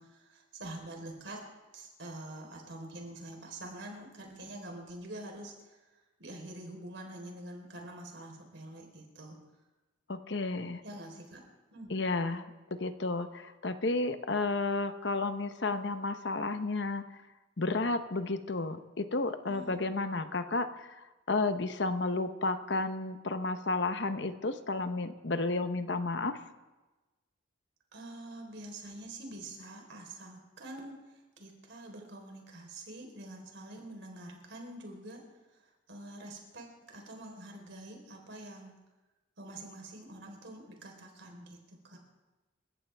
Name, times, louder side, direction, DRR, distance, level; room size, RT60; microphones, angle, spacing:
voice 1, 0.0-1.4 1.7-9.4 10.8-11.4 11.7-12.0 19.4-19.8 27.9-35.2 35.5-35.6 35.9-38.7 39.4-42.0, right 1 dB, 70° right, 2 dB, 4.0 m, -46 dB
voice 2, 10.1-10.8 11.9-17.0 17.6-26.4, left 3 dB, 60° left, 9 dB, 0.9 m, -32 dB
28.0 x 14.5 x 3.5 m, 1.1 s
head